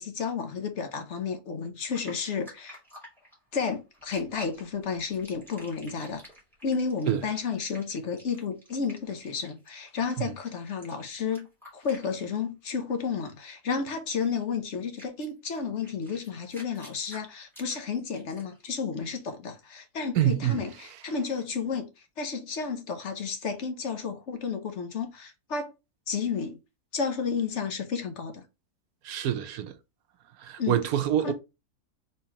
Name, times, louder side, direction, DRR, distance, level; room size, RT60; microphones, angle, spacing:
voice 1, 0.0-2.8 3.5-6.2 6.6-11.5 11.7-21.9 22.2-25.7 26.1-26.6 26.9-28.4 30.6-30.8 31.2-31.3, left 5 dB, 55° left, 1.1 m, -32 dB
sound 1, 1.9-12.4 12.7-12.9 14.4-14.5 14.9-18.6, left 1 dB, ahead, 2.2 m, -50 dB
voice 2, 20.1-20.6 29.0-29.8 30.4-31.3, right 11 dB, 85° right, 1.2 m, -26 dB
4.4 x 4.0 x 2.9 m
omnidirectional pair, 1.5 m